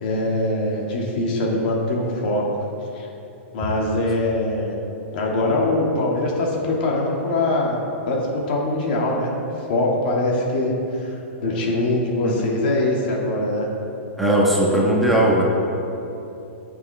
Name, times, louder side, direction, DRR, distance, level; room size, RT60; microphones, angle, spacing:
voice 1, 0.0-2.4 2.9-3.1 3.5-4.7 5.1-7.8 8.1-9.3 9.7-13.7, left 2 dB, 45° left, -2 dB, 2.1 m, -22 dB
voice 2, 14.2-15.4, right 1 dB, ahead, -6 dB, 1.2 m, -18 dB
18.5 x 7.4 x 3.5 m, 2.8 s
hypercardioid pair, 170°, 7 cm